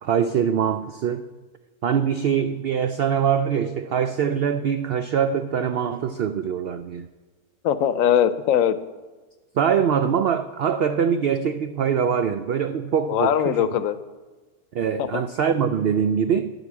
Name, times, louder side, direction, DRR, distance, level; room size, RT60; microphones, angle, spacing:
voice 1, 0.0-1.3 1.8-7.1 9.6-13.6 14.7-16.5, right 7 dB, 85° right, 10 dB, 0.5 m, -23 dB
voice 2, 7.6-8.8 13.1-14.0 15.0-15.2, left 9 dB, 70° left, 13 dB, 1.0 m, -21 dB
10.5 x 8.0 x 7.3 m, 1.3 s
omnidirectional pair, 1.6 m